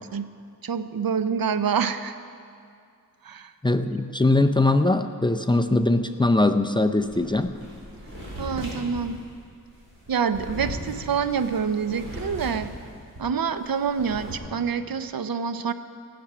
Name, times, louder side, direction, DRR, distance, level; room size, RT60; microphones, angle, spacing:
voice 1, 0.6-2.1 3.3-3.5 8.4-9.2 10.1-12.7 13.2-15.7, right 6 dB, 75° right, 11 dB, 0.7 m, -26 dB
voice 2, 3.6-7.6, left 2 dB, 15° left, 7 dB, 0.5 m, -21 dB
sound 1, 7.0-13.3 13.6-14.3, equal, 35° right, 4.5 m, -38 dB
16.0 x 10.0 x 6.0 m, 2.3 s
wide cardioid pair, 100°, 36 cm